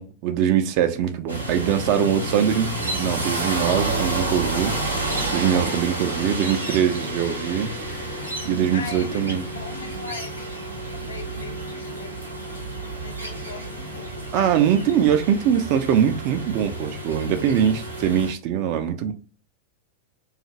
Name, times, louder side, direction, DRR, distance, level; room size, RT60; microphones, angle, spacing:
voice 1, 0.0-4.7 5.3-7.7 8.4-9.5 14.3-19.1, right 9 dB, 45° right, 0.4 m, -22 dB
sound 1, 1.3-18.3, right 2 dB, 85° right, 0.7 m, -30 dB
voice 2, 8.4-12.5 13.0-14.5, left 5 dB, 65° left, 0.5 m, -40 dB
2.5 x 2.4 x 2.9 m
figure-of-eight pair, 90°, 0 cm